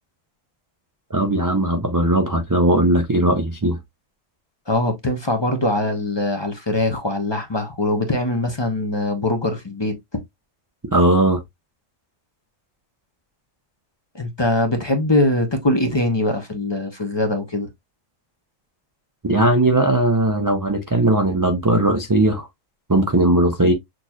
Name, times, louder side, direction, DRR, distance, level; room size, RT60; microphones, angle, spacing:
voice 1, 1.1-3.8 10.9-11.4 19.2-22.5 22.9-23.7, right 1 dB, 35° right, 0.3 m, -18 dB
voice 2, 4.7-10.0 14.1-17.7, left 1 dB, 25° left, 0.7 m, -22 dB
6.3 x 2.8 x 2.3 m
omnidirectional pair, 1.3 m